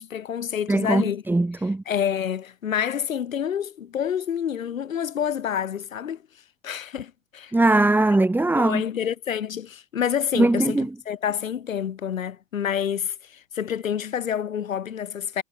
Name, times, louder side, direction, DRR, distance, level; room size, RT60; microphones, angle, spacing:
voice 1, 0.0-1.2 1.9-6.2 6.6-7.5 8.5-15.4, left 9 dB, 90° left, 6.3 m, -28 dB
voice 2, 0.7-1.8 7.5-8.8 10.4-10.9, right 2 dB, 5° right, 1.1 m, -20 dB
hypercardioid pair, 110°, 39 cm